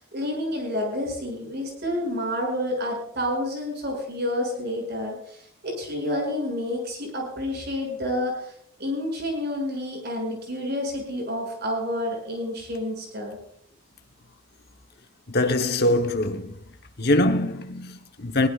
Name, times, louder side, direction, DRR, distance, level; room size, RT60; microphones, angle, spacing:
voice 1, 0.0-8.5 8.8-13.4, left 1 dB, 50° right, 6.8 m, -29 dB
voice 2, 15.3-16.5 17.0-18.5, left 1 dB, 50° left, 1.1 m, -23 dB
21.5 x 17.0 x 2.4 m
head